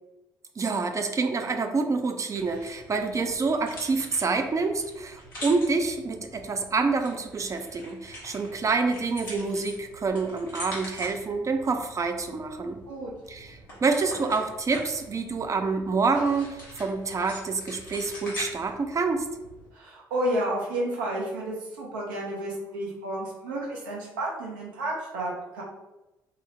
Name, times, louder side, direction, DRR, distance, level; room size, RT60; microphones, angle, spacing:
voice 1, 0.6-12.8 13.3-19.3, right 4 dB, 30° right, 6 dB, 0.3 m, -27 dB
sound 1, 2.3-19.7, left 1 dB, 85° left, 0.7 m, -44 dB
voice 2, 19.7-25.6, right 1 dB, 85° right, -4 dB, 0.5 m, -31 dB
2.8 x 2.0 x 2.6 m, 0.99 s
figure-of-eight pair, 45°, 11 cm